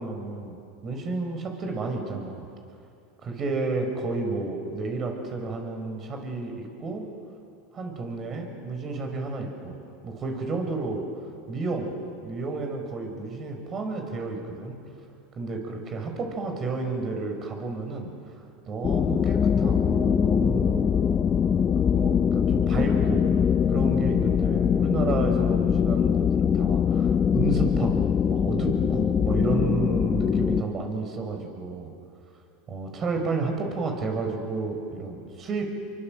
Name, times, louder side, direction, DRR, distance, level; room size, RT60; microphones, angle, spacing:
voice 1, 0.0-2.5 3.2-7.1 7.7-9.8 10.0-11.0 11.5-11.9 12.2-14.8 15.4-18.1 18.7-20.9 21.9-23.3 23.7-31.9 32.7-35.7, right 3 dB, 35° right, 4 dB, 6.2 m, -31 dB
sound 1, 18.8-30.6, left 7 dB, 30° left, 0.7 m, -22 dB
29.0 x 24.0 x 7.9 m, 2.6 s
hypercardioid pair, 105°, 0 cm